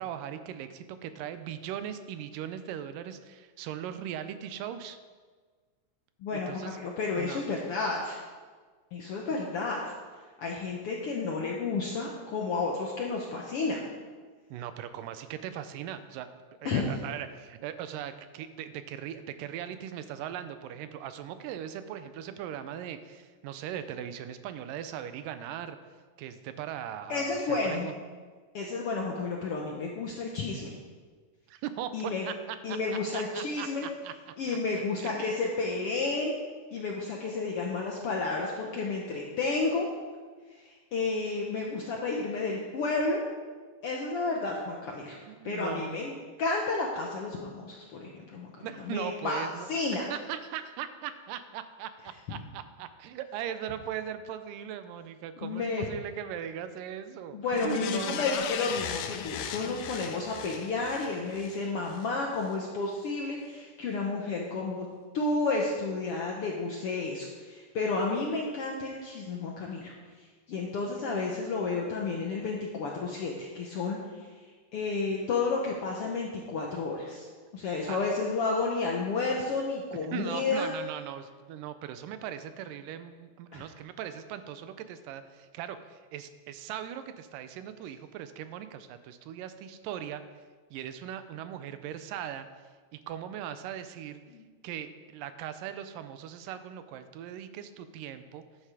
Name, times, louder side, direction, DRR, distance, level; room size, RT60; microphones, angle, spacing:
voice 1, 0.0-5.0 6.3-6.8 7.2-7.4 14.5-16.3 16.6-25.8 26.2-27.9 31.5-32.8 33.1-34.6 35.0-35.3 45.3-46.1 48.6-58.2 77.9-78.0 80.1-90.2 90.7-94.2 94.6-98.4, right 10 dB, 85° right, 11 dB, 2.3 m, -39 dB
voice 2, 6.2-8.2 8.9-9.8 10.4-13.8 16.6-16.9 27.1-27.9 28.5-30.8 31.9-32.2 32.6-33.9 34.4-36.3 36.7-39.9 40.6-43.2 43.8-45.2 45.4-46.1 46.4-48.5 48.8-49.4 49.7-50.0 55.4-55.8 57.3-64.9 65.1-69.9 70.5-74.0 74.7-77.3 77.5-80.7 83.5-83.6 94.3-94.4, left 3 dB, 70° left, -1 dB, 1.4 m, -31 dB
sound 1, 57.5-62.1 62.5-62.6, left 9 dB, 85° left, 2.2 m, -38 dB
11.0 x 8.4 x 4.8 m, 1.5 s
omnidirectional pair, 3.9 m